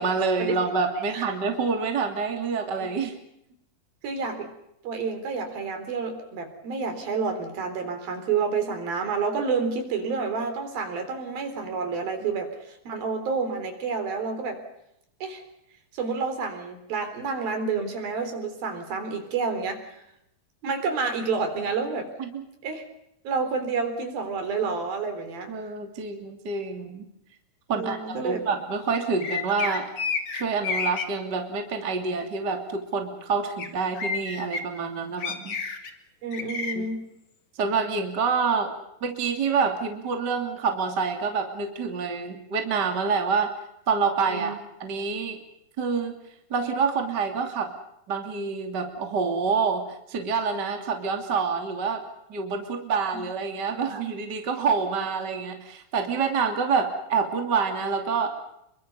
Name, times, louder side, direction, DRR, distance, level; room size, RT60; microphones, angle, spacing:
voice 1, 0.0-3.1 22.2-22.4 25.5-27.0 27.7-29.9 30.3-35.6 36.7-36.8 37.6-38.7 39.0-43.5 43.9-45.4 45.8-46.2 46.5-47.7 48.1-52.0 52.3-58.4, right 5 dB, 30° right, 4 dB, 3.0 m, -27 dB
voice 2, 4.0-4.5 4.8-14.6 15.2-15.4 15.9-19.9 20.6-22.1 22.6-22.8 23.3-25.5 27.7-28.4 36.2-37.1 44.2-44.6 53.8-54.0, right 5 dB, 70° right, 7 dB, 5.5 m, -29 dB
sound 1, 29.2-31.0 33.6-33.7 34.0-34.6 35.2-35.9 36.3-36.7, left 5 dB, 40° left, 2.3 m, -30 dB
28.0 x 23.5 x 5.5 m, 0.79 s
omnidirectional pair, 4.4 m